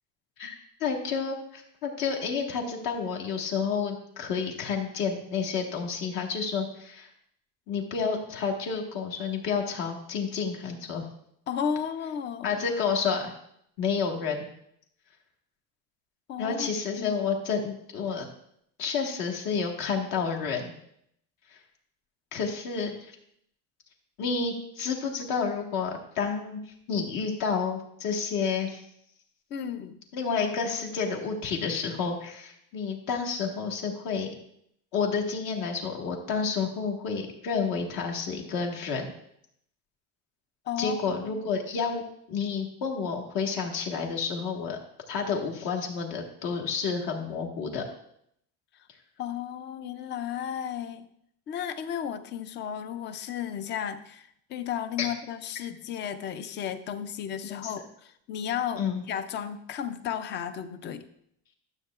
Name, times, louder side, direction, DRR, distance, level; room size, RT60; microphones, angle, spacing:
voice 1, 0.4-7.1 7.7-11.1 12.4-13.3 13.8-14.5 16.4-18.3 18.8-20.7 21.5-21.6 22.3-23.1 24.2-26.6 26.9-28.8 30.1-34.3 34.9-39.1 40.8-42.0 42.3-44.8 45.1-47.8 55.0-55.1 58.8-59.0, left 5 dB, 60° left, 1 dB, 1.6 m, -30 dB
voice 2, 11.5-12.6 16.3-16.7 17.0-17.1 29.5-30.0 40.7-41.4 49.2-51.1 51.5-61.0, left 8 dB, 30° left, 12 dB, 0.4 m, -34 dB
12.5 x 7.5 x 2.4 m, 0.71 s
cardioid pair, 170°, 38 cm